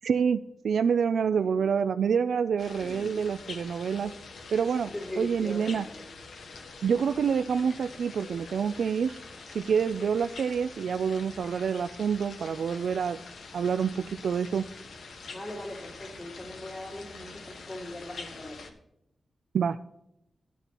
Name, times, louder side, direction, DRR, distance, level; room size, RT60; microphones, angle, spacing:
voice 1, 0.0-4.1 4.5-5.9 6.8-9.2 9.5-13.2 13.5-14.7 19.5-19.8, right 6 dB, 85° right, 11 dB, 0.3 m, -27 dB
sound 1, 2.6-18.7, left 4 dB, 85° left, 1.3 m, -45 dB
voice 2, 2.8-3.3 4.9-6.0 15.3-18.8, left 1 dB, 30° left, -3 dB, 2.1 m, -40 dB
13.5 x 9.8 x 2.9 m, 0.82 s
wide cardioid pair, 145°, 0 cm